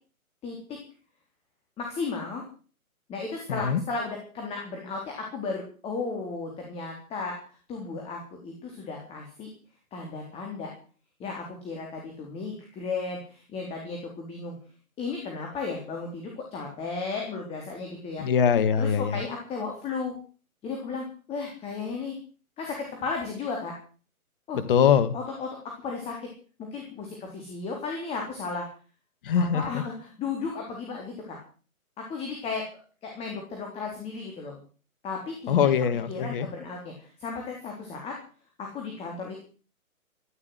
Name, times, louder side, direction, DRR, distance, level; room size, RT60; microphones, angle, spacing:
voice 1, 0.4-0.8 1.8-2.4 3.1-9.5 9.9-10.7 11.2-14.5 15.0-18.3 18.8-20.2 20.6-22.2 22.6-23.7 24.5-24.6 25.1-25.5 25.8-26.3 26.6-28.7 29.4-31.4 32.1-32.6 33.0-34.6 35.0-35.7 36.1-38.1 38.6-39.4, left 4 dB, 15° left, 1 dB, 3.8 m, -34 dB
voice 2, 3.5-3.8 18.2-19.2 24.7-25.1 29.2-29.8 35.5-36.5, left 7 dB, 35° left, 12 dB, 1.8 m, -22 dB
15.0 x 11.5 x 8.2 m, 0.40 s
hypercardioid pair, 150°, 43 cm